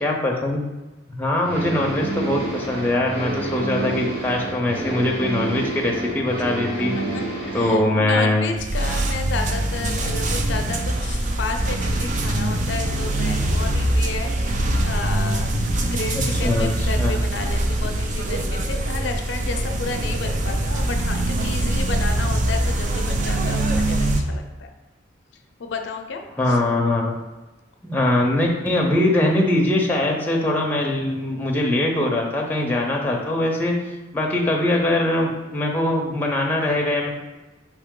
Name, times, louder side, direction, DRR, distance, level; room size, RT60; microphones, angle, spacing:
voice 1, 0.0-0.6 1.2-6.9 7.5-8.5 16.1-17.1 26.4-27.1 27.8-33.8 34.1-37.1, left 1 dB, 10° left, 0 dB, 0.5 m, -22 dB
sound 1, 1.4-7.8, right 2 dB, 55° right, 1.2 m, -29 dB
voice 2, 7.0-14.3 14.8-15.5 15.8-24.7 25.6-26.6, left 4 dB, 70° left, 5 dB, 0.4 m, -32 dB
sound 2, 8.6-24.2, right 1 dB, 40° right, 0.4 m, -23 dB
4.5 x 3.3 x 3.7 m, 1.1 s
head